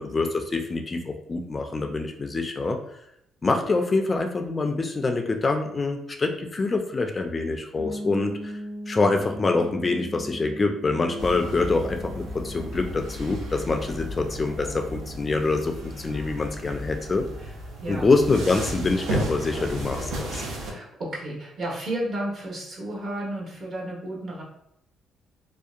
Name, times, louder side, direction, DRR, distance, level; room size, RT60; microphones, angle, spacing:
voice 1, 0.0-2.8 3.4-8.5 8.9-17.2 17.9-20.4, left 3 dB, 30° left, 4 dB, 0.3 m, -25 dB
sound 1, 7.8-17.5, equal, 40° right, 1.0 m, -41 dB
sound 2, 11.2-20.7, right 1 dB, 90° right, 0.5 m, -34 dB
voice 2, 20.7-24.4, right 1 dB, 55° right, -4 dB, 1.0 m, -32 dB
2.7 x 2.1 x 2.4 m, 0.74 s
cardioid pair, 90°, 0 cm